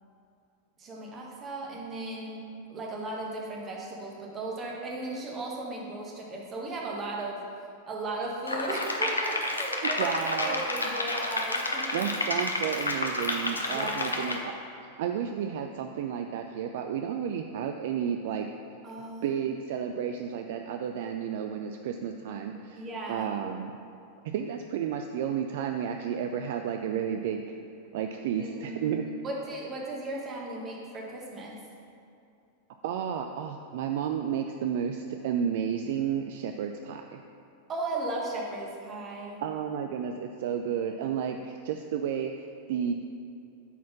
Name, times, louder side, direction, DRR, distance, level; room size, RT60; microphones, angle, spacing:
voice 1, 0.8-2.4 2.7-7.4 7.9-10.2 10.4-12.0 13.7-14.2 18.8-19.4 22.8-23.3 28.3-31.6 37.7-39.4, right 2 dB, 25° right, -2 dB, 1.4 m, -36 dB
sound 1, 8.5-14.4, left 2 dB, 80° left, 0.7 m, -30 dB
voice 2, 10.0-10.6 11.9-14.4 15.0-18.5 19.2-23.7 24.3-27.6 27.9-29.0 32.8-37.2 39.4-42.9, right 8 dB, 55° right, 5 dB, 0.3 m, -32 dB
8.2 x 4.2 x 5.7 m, 2.6 s
figure-of-eight pair, 90°, 0 cm